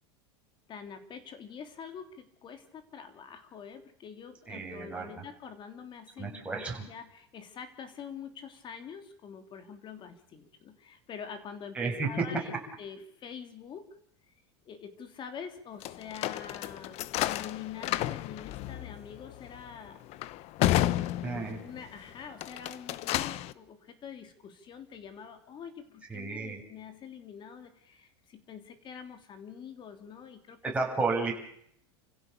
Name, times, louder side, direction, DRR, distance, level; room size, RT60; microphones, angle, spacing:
voice 1, 0.7-13.9 14.3-14.4 14.6-20.0 21.3-31.0, left 7 dB, 35° left, 8 dB, 3.4 m, -45 dB
voice 2, 4.5-5.1 6.2-6.8 11.7-12.1 21.2-21.6 26.1-26.6 30.6-31.3, right 4 dB, 10° right, -2 dB, 7.1 m, -32 dB
sound 1, 15.8-21.9 22.3-23.5, left 15 dB, 50° left, 1.0 m, -32 dB
28.5 x 16.0 x 6.9 m, 0.68 s
supercardioid pair, 120°, 14 cm